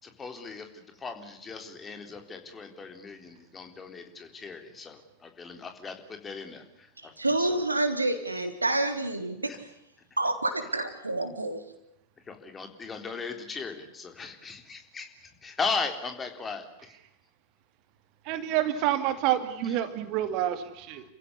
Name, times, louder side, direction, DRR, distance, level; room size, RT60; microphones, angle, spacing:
voice 1, 0.0-7.1 7.4-7.6 9.4-9.6 12.3-17.0, left 4 dB, 20° left, 6 dB, 3.8 m, -37 dB
voice 2, 7.2-9.7 10.2-11.6, right 2 dB, 80° right, 7 dB, 3.3 m, -28 dB
voice 3, 18.2-21.0, right 12 dB, 45° right, 10 dB, 2.6 m, -28 dB
29.5 x 16.0 x 9.9 m, 0.80 s
figure-of-eight pair, 90°, 0 cm